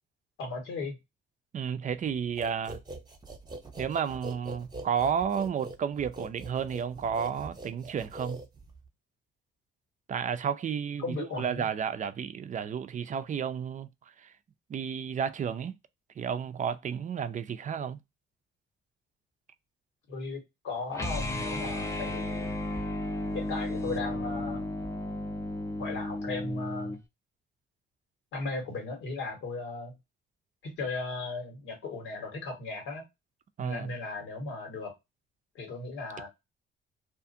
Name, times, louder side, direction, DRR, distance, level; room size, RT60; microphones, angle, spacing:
voice 1, 0.4-1.0 11.0-11.7 20.1-22.5 23.3-24.7 25.8-27.0 28.3-30.0 30.6-33.0 33.6-34.9 35.5-36.3, left 3 dB, 85° left, 1.4 m, -36 dB
voice 2, 1.5-2.8 3.8-8.4 10.1-13.9 14.2-14.3 14.7-15.8 16.2-18.0 33.6-33.9, right 7 dB, 40° right, 0.4 m, -32 dB
sound 1, 2.4-8.9, right 2 dB, 20° right, 0.8 m, -43 dB
sound 2, 20.9-27.0, left 1 dB, 15° left, 0.6 m, -34 dB
2.5 x 2.4 x 2.6 m
cardioid pair, 90°, 20 cm